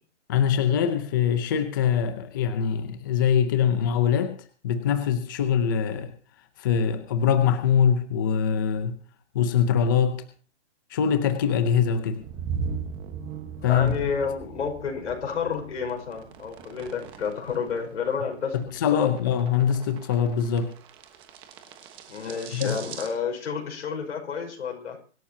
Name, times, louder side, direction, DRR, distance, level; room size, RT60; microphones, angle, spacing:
voice 1, 0.3-4.4 4.6-6.1 6.6-8.9 9.3-10.2 10.9-12.2 13.6-14.0 18.5-20.7 22.5-22.8, left 8 dB, 15° left, 10 dB, 0.6 m, -23 dB
sound 1, 12.2-23.1, right 6 dB, 15° right, 1.2 m, -39 dB
voice 2, 13.6-18.6 18.9-19.1 22.1-25.0, left 6 dB, 70° left, 3 dB, 5.4 m, -30 dB
24.5 x 12.0 x 2.8 m, 0.39 s
hypercardioid pair, 170°, 37 cm